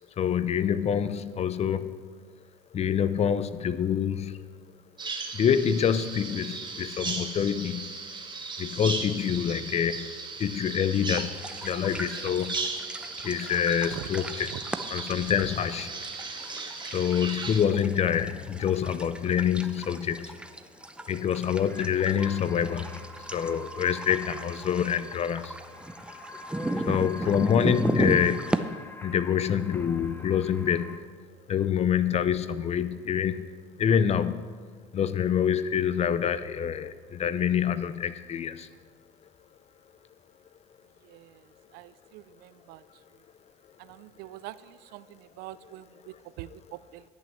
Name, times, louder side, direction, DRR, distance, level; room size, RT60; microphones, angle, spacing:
voice 1, 0.2-1.9 2.7-4.5 5.3-8.0 8.6-12.6 13.2-14.5 14.9-15.9 16.9-20.4 21.1-23.0 23.3-25.6 26.9-28.6 29.0-31.2 31.5-33.5 33.8-34.5 34.9-38.7, left 8 dB, 40° left, 14 dB, 0.7 m, -26 dB
Bird vocalization bird call bird song, 5.0-17.6, right 4 dB, 30° right, 1.9 m, -37 dB
sound 1, 11.1-28.6, right 1 dB, 5° right, 0.7 m, -36 dB
sound 2, 21.6-31.0, left 1 dB, 15° left, 1.0 m, -45 dB
voice 2, 41.0-41.4 41.7-42.8 43.8-47.0, right 16 dB, 70° right, 17 dB, 0.5 m, -44 dB
11.0 x 6.0 x 7.5 m, 1.6 s
supercardioid pair, 75°, 16 cm